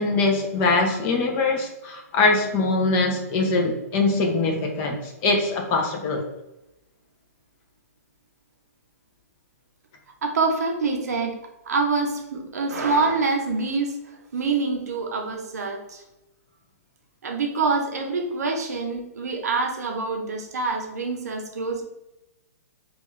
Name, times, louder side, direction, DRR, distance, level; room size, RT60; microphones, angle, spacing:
voice 1, 0.0-6.2, left 3 dB, 25° left, 2 dB, 0.4 m, -22 dB
voice 2, 10.2-11.4 11.6-16.0 17.2-21.8, right 4 dB, 85° right, 2 dB, 0.6 m, -26 dB
2.3 x 2.3 x 3.0 m, 0.94 s
hypercardioid pair, 150°, 9 cm